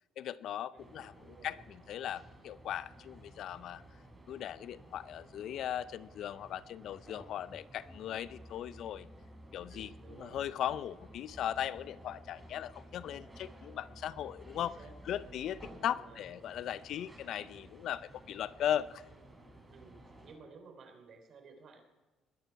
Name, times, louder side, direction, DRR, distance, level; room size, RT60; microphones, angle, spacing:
voice 1, 0.2-3.8 4.3-9.1 9.5-14.7 15.1-19.0, left 10 dB, 70° left, 17 dB, 0.5 m, -38 dB
voice 2, 0.7-1.6 9.7-10.4 14.5-15.4 15.8-16.2 19.7-21.8, right 5 dB, 55° right, 5 dB, 3.6 m, -55 dB
sound 1, 0.8-20.4, right 1 dB, 15° right, 4.3 m, -56 dB
sound 2, 6.9-15.8, equal, 5° left, 0.7 m, -55 dB
21.0 x 9.9 x 4.7 m, 1.2 s
cardioid pair, 90°, 0 cm